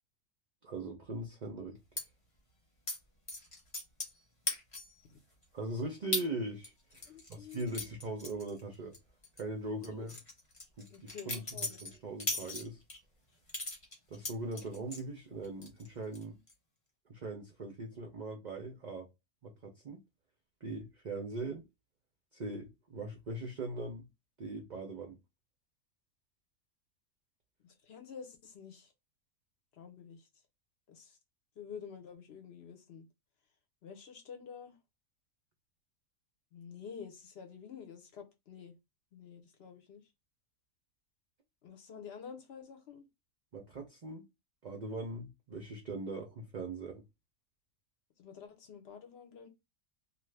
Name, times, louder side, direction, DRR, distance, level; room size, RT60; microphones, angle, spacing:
voice 1, 0.6-2.0 5.5-8.9 9.4-10.1 10.8-12.8 14.1-16.4 17.1-19.1 19.4-20.0 20.6-21.6 22.3-24.1 24.4-25.2 43.5-44.2 44.6-47.0, right 2 dB, 55° right, 0.5 m, -40 dB
sound 1, 2.0-2.1 2.9-3.0 3.3-4.2 4.5-5.0 5.4-5.5 6.1-6.3 6.6-9.0 9.2-9.4 9.8-13.0 13.5-15.0 15.4-15.9 16.1-16.5, left 2 dB, 25° left, 0.9 m, -38 dB
voice 2, 7.0-7.8 9.9-10.1 10.9-11.8 27.6-28.9 29.7-30.3 30.9-31.2 31.6-33.1 33.8-34.8 36.5-38.8 39.1-40.1 41.6-43.1 48.2-49.5, left 7 dB, 55° left, 0.8 m, -49 dB
2.7 x 2.4 x 3.3 m
omnidirectional pair, 1.5 m